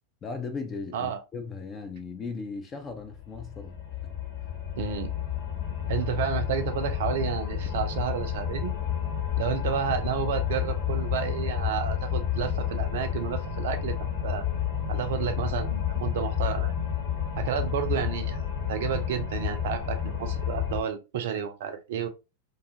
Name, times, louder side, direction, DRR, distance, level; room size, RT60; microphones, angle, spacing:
voice 1, 0.2-3.8 4.0-4.1 4.4-4.5, left 4 dB, 25° left, 0.5 m, -37 dB
sound 1, 3.0-20.8, left 9 dB, 60° left, 1.1 m, -30 dB
voice 2, 4.8-5.1 5.9-8.7 9.4-14.0 14.2-14.4 14.9-16.7 17.4-18.4 18.7-22.1, right 8 dB, 55° right, 0.5 m, -31 dB
2.6 x 2.3 x 2.7 m
figure-of-eight pair, 90°, 0 cm